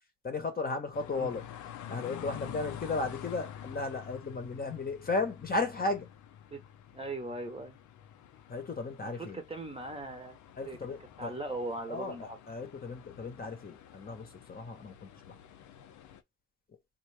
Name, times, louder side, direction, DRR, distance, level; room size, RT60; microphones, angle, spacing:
voice 1, 0.2-1.4 1.9-6.1 8.5-9.4 10.6-11.3 11.9-15.4, left 3 dB, 30° left, 0.9 m, -35 dB
Quiet City Boulvard By Night, 0.9-16.2, left 10 dB, 75° left, 0.6 m, -48 dB
voice 2, 6.9-7.8 9.0-10.4 10.7-10.8 11.2-12.4, right 2 dB, 20° right, 0.8 m, -39 dB
3.5 x 2.6 x 3.2 m
cardioid pair, 90°, 30 cm